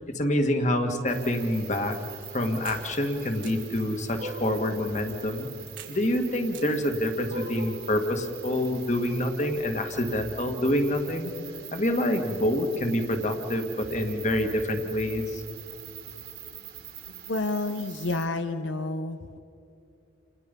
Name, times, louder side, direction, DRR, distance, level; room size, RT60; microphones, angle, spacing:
voice 1, 0.1-2.0 2.3-5.5 5.9-11.3 11.7-15.4, left 1 dB, 40° left, 5 dB, 2.0 m, -27 dB
sound 1, 1.1-18.3, right 10 dB, 60° right, 2.7 m, -44 dB
sound 2, 2.6-2.8 3.4-3.5 4.1-4.7 5.8-5.9 6.5-6.7 7.2-7.8, right 1 dB, 85° right, 3.8 m, -38 dB
voice 2, 17.3-19.2, left 2 dB, 85° left, 8 dB, 0.9 m, -29 dB
30.0 x 29.0 x 5.4 m, 2.6 s
head